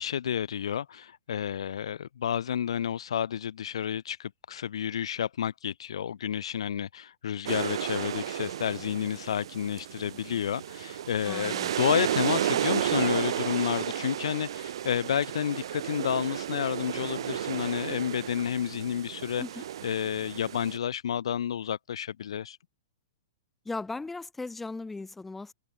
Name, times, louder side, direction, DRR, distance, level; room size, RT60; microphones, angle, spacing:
voice 1, 0.0-19.4 19.8-22.6, left 9 dB, 85° left, 0.5 m, -30 dB
sound 1, 7.5-20.8, right 10 dB, 65° right, 0.6 m, -33 dB
voice 2, 11.2-11.7 19.4-19.6 23.7-25.5, left 3 dB, 5° left, 0.4 m, -37 dB
hypercardioid pair, 160°, 3 cm